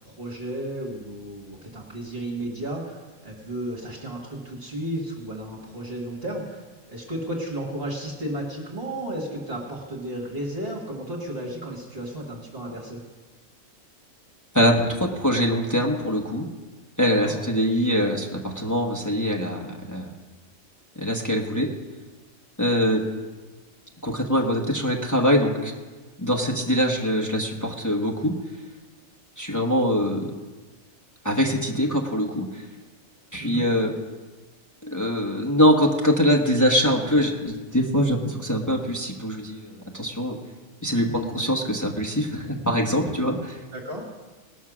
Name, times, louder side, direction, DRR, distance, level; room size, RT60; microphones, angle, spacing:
voice 1, 0.0-13.0 17.1-17.3 33.4-33.6 43.7-44.0, right 1 dB, 45° right, -2 dB, 2.0 m, -33 dB
voice 2, 14.5-16.5 17.0-20.1 21.0-21.7 22.6-23.0 24.0-25.7 26.2-28.3 29.4-30.3 31.2-32.6 33.3-33.9 34.8-40.4 40.8-43.6, equal, 15° left, 0 dB, 1.1 m, -23 dB
19.0 x 6.4 x 6.2 m, 1.3 s
omnidirectional pair, 1.4 m